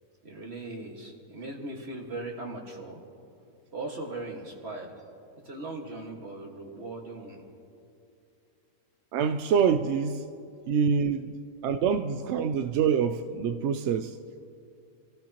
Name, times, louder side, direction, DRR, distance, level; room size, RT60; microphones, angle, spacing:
voice 1, 0.2-3.0 3.7-4.9 5.4-7.4, right 2 dB, 45° right, 0 dB, 2.0 m, -39 dB
voice 2, 9.1-10.2 10.7-11.3 11.6-14.2, right 7 dB, 65° right, 8 dB, 0.7 m, -26 dB
28.0 x 15.0 x 2.9 m, 2.5 s
omnidirectional pair, 1.6 m